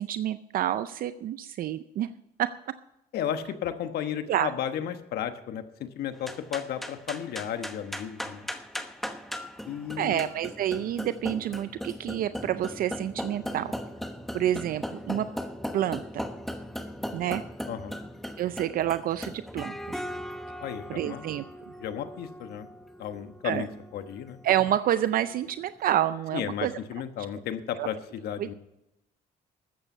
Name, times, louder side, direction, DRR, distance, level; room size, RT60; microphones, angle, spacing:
voice 1, 0.0-2.1 2.4-2.7 4.3-4.5 10.0-13.7 14.3-15.3 15.7-16.3 17.1-17.4 18.4-20.0 20.9-21.4 23.4-23.7 24.4-26.7 27.8-27.9 28.4-28.5, right 11 dB, 60° right, 13 dB, 0.5 m, -28 dB
voice 2, 3.1-5.6 5.9-8.5 9.7-10.3 17.7-18.0 20.6-21.3 21.8-22.7 23.0-24.4 26.3-28.5, left 9 dB, 70° left, 9 dB, 1.2 m, -34 dB
sound 1, 6.2-25.7, equal, ahead, 1.0 m, -39 dB
13.0 x 8.8 x 5.6 m, 0.87 s
cardioid pair, 110°, 17 cm